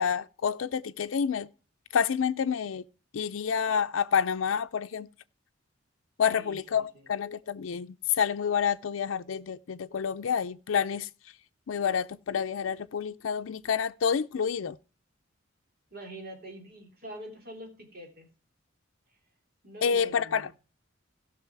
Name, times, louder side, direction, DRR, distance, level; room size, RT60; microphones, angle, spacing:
voice 1, 0.0-1.5 1.9-2.8 3.1-5.1 6.2-11.1 11.7-14.8 19.8-20.5, left 7 dB, 85° left, 0.4 m, -28 dB
voice 2, 6.3-7.1 15.9-18.3 19.6-20.5, equal, 50° right, 3.4 m, -45 dB
16.0 x 6.1 x 4.6 m
head